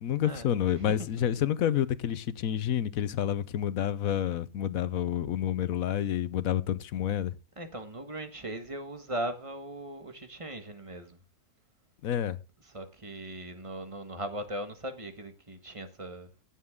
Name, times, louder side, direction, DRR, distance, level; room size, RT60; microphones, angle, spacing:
voice 1, 0.0-7.4 12.0-12.4, left 10 dB, 80° left, 1.2 m, -29 dB
voice 2, 0.8-1.2 7.6-11.2 12.7-16.3, right 1 dB, 25° right, 1.5 m, -39 dB
16.5 x 7.3 x 3.7 m
omnidirectional pair, 1.4 m